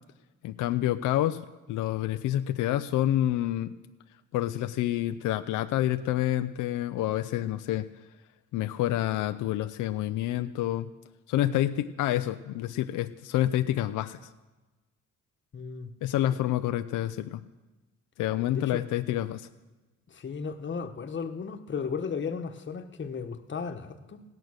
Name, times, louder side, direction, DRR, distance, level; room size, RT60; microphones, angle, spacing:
voice 1, 0.4-1.4 1.7-3.7 4.3-7.9 8.5-10.9 11.3-14.3 16.0-17.4 18.2-19.5, left 13 dB, 80° left, 9 dB, 0.6 m, -28 dB
voice 2, 15.5-15.9 16.3-16.4 18.5-18.8 20.1-24.2, left 5 dB, 40° left, 7 dB, 1.3 m, -35 dB
16.5 x 11.0 x 6.5 m, 1.2 s
cardioid pair, 90°, 30 cm